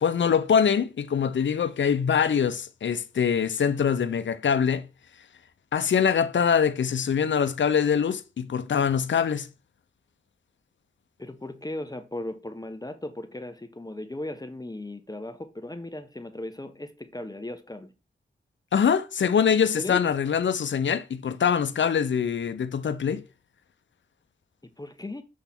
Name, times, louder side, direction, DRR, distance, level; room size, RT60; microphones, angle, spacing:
voice 1, 0.0-4.9 5.7-9.5 18.7-23.2, left 7 dB, 70° left, 0.8 m, -24 dB
voice 2, 11.2-17.9 19.8-20.1 24.6-25.2, left 1 dB, 20° left, 1.0 m, -37 dB
7.3 x 3.4 x 5.9 m
cardioid pair, 45°, 20 cm